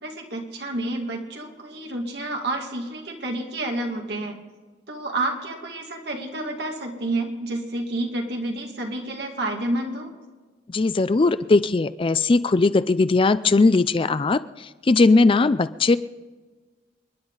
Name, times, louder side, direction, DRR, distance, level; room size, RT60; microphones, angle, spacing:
voice 1, 0.0-4.4 4.9-10.1, right 2 dB, 65° right, 2 dB, 2.3 m, -29 dB
voice 2, 10.7-16.0, left 3 dB, 30° left, 14 dB, 0.4 m, -19 dB
29.5 x 10.5 x 4.0 m, 1.3 s
head